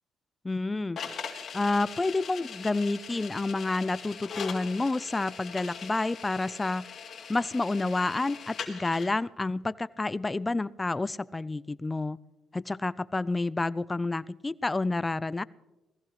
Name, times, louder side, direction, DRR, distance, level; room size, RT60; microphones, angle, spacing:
voice 1, 0.4-1.0 1.5-6.9 7.3-12.2 12.5-15.4, left 2 dB, 20° left, 19 dB, 0.4 m, -29 dB
sound 1, 1.0-9.1, left 6 dB, 55° left, 2.4 m, -41 dB
19.5 x 15.0 x 3.2 m, 1.1 s
cardioid pair, 90°, 0 cm